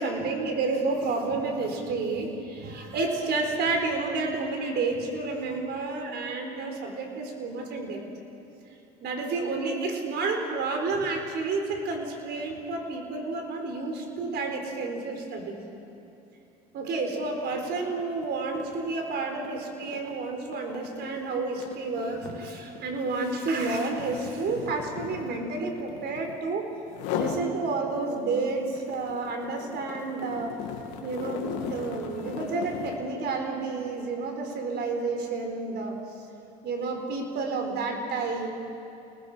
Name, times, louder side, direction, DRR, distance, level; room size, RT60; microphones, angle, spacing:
voice 1, 0.0-8.0 9.0-15.6 16.7-26.7 27.1-30.6 31.0-36.0 36.6-38.5, right 3 dB, 60° right, 4 dB, 4.2 m, -30 dB
Cat Scratching A Post, 17.5-17.7 18.0-26.4 26.9-27.5 27.9-33.1, left 8 dB, 80° left, 2.1 m, -37 dB
29.0 x 19.5 x 5.0 m, 2.9 s
supercardioid pair, 75°, 19 cm